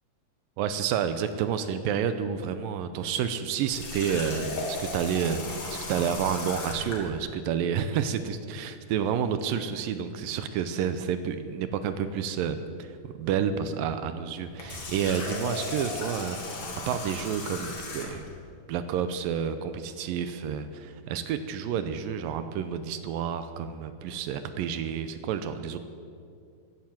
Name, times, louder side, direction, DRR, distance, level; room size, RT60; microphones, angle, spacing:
voice 1, 0.6-5.4 5.7-16.4 16.9-18.2 18.7-25.8, right 8 dB, 80° right, 10 dB, 2.3 m, -30 dB
Water tap faucet, 3.7-7.1 14.5-18.3, left 2 dB, 45° left, 2.7 m, -36 dB
15.5 x 11.5 x 7.7 m, 2.3 s
omnidirectional pair, 4.2 m